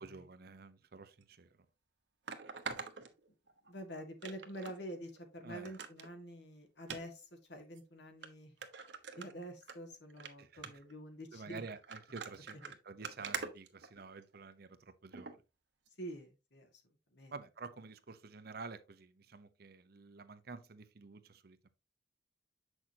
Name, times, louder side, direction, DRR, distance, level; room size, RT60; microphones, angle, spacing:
voice 1, 0.0-1.5 5.4-5.7 10.4-10.7 11.3-12.6 12.8-15.4 17.3-21.7, right 4 dB, 60° right, 0.8 m, -50 dB
sound 1, 1.2-1.3 2.3-3.7 4.2-4.8 5.2-5.3 5.6-6.1 6.8-7.0 7.8-7.9 8.2-8.3 8.6-9.8 10.1-10.3 10.6-10.9 11.7-14.4 15.1-15.4 15.9-16.0, right 5 dB, 85° right, 1.1 m, -44 dB
voice 2, 3.7-8.5 9.2-11.6 12.6-12.7 16.0-16.7 17.1-17.3, equal, 70° left, 2.0 m, -47 dB
7.6 x 6.3 x 2.8 m
head